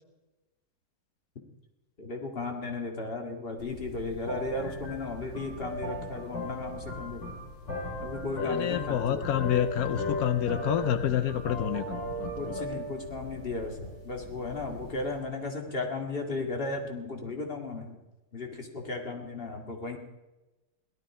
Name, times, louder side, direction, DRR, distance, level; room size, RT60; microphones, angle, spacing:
voice 1, 2.0-7.3 8.0-9.5 12.4-18.0 18.3-20.0, left 3 dB, 30° left, 2 dB, 2.1 m, -35 dB
sound 1, 3.6-15.2, left 1 dB, 60° left, 6.4 m, -37 dB
voice 2, 8.4-12.6, left 11 dB, 75° left, 10 dB, 0.8 m, -29 dB
17.5 x 12.5 x 4.9 m, 1.1 s
omnidirectional pair, 2.2 m